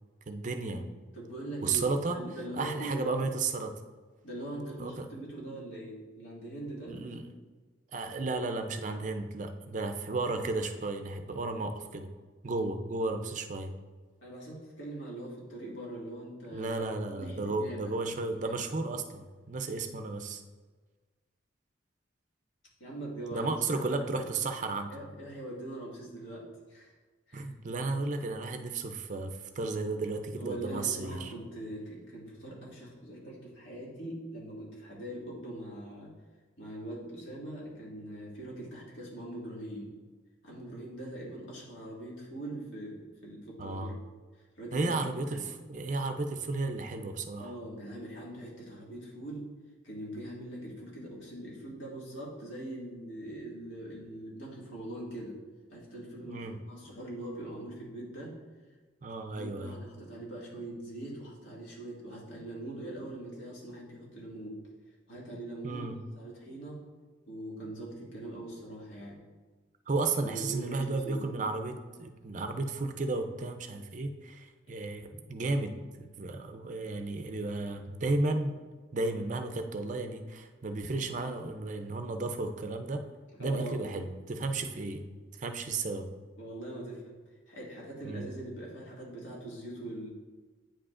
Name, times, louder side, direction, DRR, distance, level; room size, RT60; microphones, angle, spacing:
voice 1, 0.3-0.8 1.6-2.2 2.5-3.7 4.8-5.1 6.9-7.2 7.9-12.1 12.4-13.7 16.5-20.4 23.3-24.9 27.3-31.3 43.6-44.0 44.7-47.5 56.2-56.6 59.0-59.8 65.6-66.0 69.9-78.7 78.9-83.0 83.4-85.0 85.4-86.1 88.0-88.3, right 3 dB, 40° right, 6 dB, 0.4 m, -33 dB
voice 2, 1.1-3.2 4.2-7.0 14.2-16.8 17.2-18.6 22.8-24.2 24.9-26.9 27.3-27.5 30.4-36.1 36.6-39.9 40.4-43.9 44.6-44.9 45.3-45.5 47.4-49.5 49.8-55.4 55.7-58.4 59.4-64.6 65.1-65.9 66.2-66.8 67.3-69.2 70.2-71.2 83.3-83.8 86.4-87.2 87.5-90.1, right 1 dB, 75° left, -5 dB, 1.9 m, -42 dB
8.8 x 4.9 x 2.5 m, 1.4 s
head